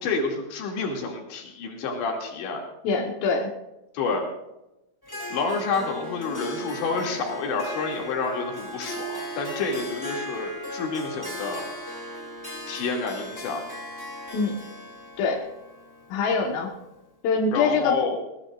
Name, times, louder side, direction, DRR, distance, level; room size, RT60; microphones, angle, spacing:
voice 1, 0.0-2.6 3.9-4.2 5.3-11.7 12.7-13.6 17.5-18.2, left 4 dB, 70° left, 0 dB, 4.8 m, -29 dB
voice 2, 2.8-3.5 14.3-14.6 15.2-15.5 16.1-16.7 17.2-18.0, left 4 dB, 85° left, 0 dB, 4.1 m, -24 dB
Harp, 5.0-16.9, equal, 10° left, 1.1 m, -37 dB
21.0 x 19.0 x 2.5 m, 0.91 s
omnidirectional pair, 5.6 m